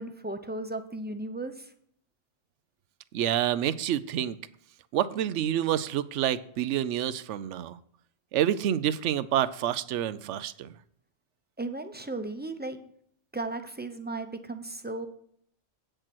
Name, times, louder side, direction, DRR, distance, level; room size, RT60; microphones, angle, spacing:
voice 1, 0.0-1.7 11.6-12.8 13.3-15.1, right 2 dB, 10° right, 7 dB, 0.7 m, -35 dB
voice 2, 3.1-4.4 4.9-7.8 8.3-10.7, right 11 dB, 80° right, 16 dB, 0.9 m, -28 dB
8.8 x 6.7 x 6.1 m, 0.65 s
omnidirectional pair, 1.2 m